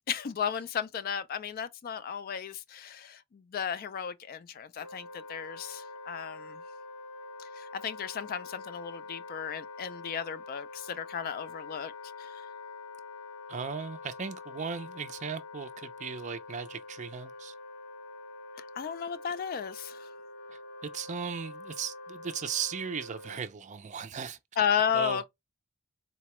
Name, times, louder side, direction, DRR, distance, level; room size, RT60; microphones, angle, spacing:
voice 1, 0.1-6.6 7.4-11.9 12.2-12.4 18.6-20.1 24.6-25.3, left 8 dB, 45° left, 0.3 m, -34 dB
Wind instrument woodwind instrument, 4.8-23.4, left 3 dB, 75° left, 0.7 m, -45 dB
voice 2, 13.5-17.5 20.5-24.4 24.9-25.3, right 6 dB, 35° right, 0.4 m, -37 dB
4.0 x 2.2 x 2.9 m
head